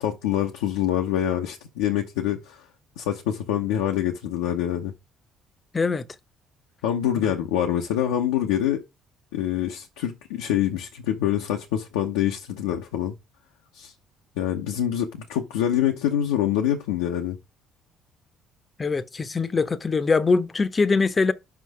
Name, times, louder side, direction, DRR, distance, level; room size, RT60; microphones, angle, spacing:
voice 1, 0.0-2.6 3.0-4.9 6.8-8.8 9.3-13.1 13.7-13.9 14.4-17.4, left 11 dB, 85° left, 0.8 m, -25 dB
voice 2, 5.7-6.0 18.8-21.3, left 4 dB, 30° left, 0.8 m, -22 dB
5.9 x 4.9 x 4.8 m
hypercardioid pair, 60°, 0 cm